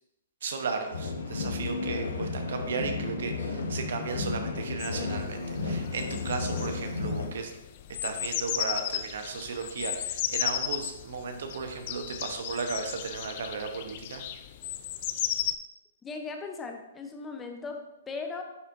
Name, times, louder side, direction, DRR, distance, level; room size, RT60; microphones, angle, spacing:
voice 1, 0.4-7.5 8.0-14.2, right 5 dB, 70° right, 5 dB, 1.0 m, -35 dB
sound 1, 0.9-7.3, left 4 dB, 85° left, 1.0 m, -33 dB
sound 2, 4.8-15.6, left 12 dB, 45° left, 0.4 m, -35 dB
voice 2, 16.0-18.4, left 4 dB, 15° left, 4 dB, 0.8 m, -38 dB
9.7 x 4.3 x 2.6 m, 0.91 s
hypercardioid pair, 130°, 0 cm